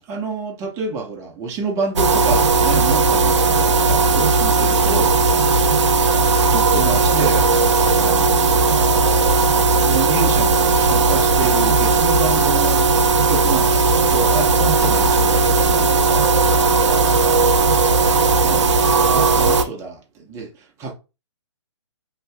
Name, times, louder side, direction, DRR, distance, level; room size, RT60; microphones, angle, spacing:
voice 1, 0.0-5.2 6.5-7.5 8.0-8.8 9.7-12.9 13.2-16.8 18.4-18.7 19.1-20.9, right 4 dB, 20° right, 0.8 m, -28 dB
sound 1, 2.0-19.6, right 4 dB, 75° right, 0.6 m, -16 dB
2.8 x 2.3 x 3.3 m
hypercardioid pair, 145°, 15 cm